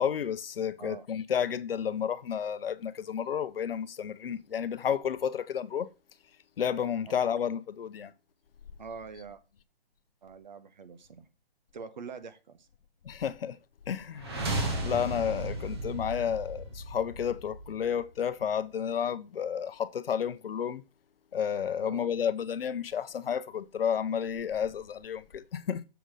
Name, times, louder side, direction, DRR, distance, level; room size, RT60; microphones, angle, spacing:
voice 1, 0.0-5.9 6.6-8.1 13.0-13.6 13.9-14.5 14.8-20.8 21.3-25.8, left 8 dB, 70° left, 0.7 m, -31 dB
voice 2, 8.8-9.4 10.2-11.3 11.7-12.7 21.8-22.0, right 5 dB, 50° right, 1.0 m, -44 dB
sound 1, 14.2-18.1, right 1 dB, 25° right, 1.3 m, -35 dB
6.9 x 3.9 x 6.3 m
hypercardioid pair, 175°, 30 cm